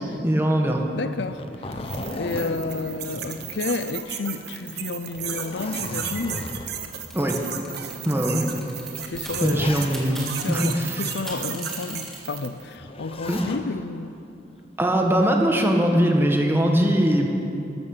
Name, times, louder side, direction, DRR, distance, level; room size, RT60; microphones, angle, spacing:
voice 1, 0.2-0.8 7.1-7.4 8.0-8.5 9.4-11.1 13.3-13.5 14.8-17.3, equal, 15° right, 1 dB, 1.6 m, -21 dB
voice 2, 0.9-6.4 9.1-9.8 10.4-14.2, left 3 dB, 65° left, 11 dB, 0.6 m, -31 dB
Zipper (clothing), 1.1-4.1 4.4-4.5 5.1-6.9 7.7-7.8 8.8-10.3 12.8-13.7 15.0-15.5, left 1 dB, 30° left, 0.9 m, -36 dB
sound 1, 1.7-12.7, right 9 dB, 60° right, 1.1 m, -34 dB
sound 2, 7.1-9.4 9.7-12.2, equal, 5° left, 3.1 m, -39 dB
13.0 x 13.0 x 6.7 m, 2.9 s
head